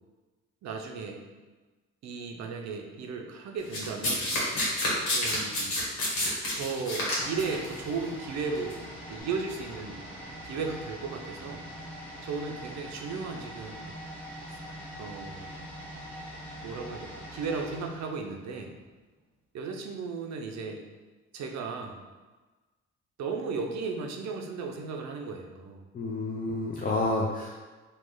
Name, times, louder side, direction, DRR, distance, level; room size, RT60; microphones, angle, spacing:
voice 1, 0.6-1.2 2.0-4.3 5.1-5.8 6.5-8.8 9.1-10.0 10.4-11.7 12.2-13.9 14.5-14.6 15.0-15.7 16.6-18.7 19.5-20.8 21.3-22.0 23.2-25.8 26.8-26.9, right 4 dB, 65° right, 2 dB, 0.6 m, -35 dB
Domestic sounds home sounds, 3.7-7.7 8.5-8.7, left 1 dB, 90° left, 1.2 m, -29 dB
sound 1, 7.2-18.9 19.2-19.3, equal, 5° left, 1.0 m, -43 dB
voice 2, 25.9-27.6, left 2 dB, 30° left, -3 dB, 0.5 m, -29 dB
3.1 x 2.4 x 3.7 m, 1.3 s
cardioid pair, 90°, 30 cm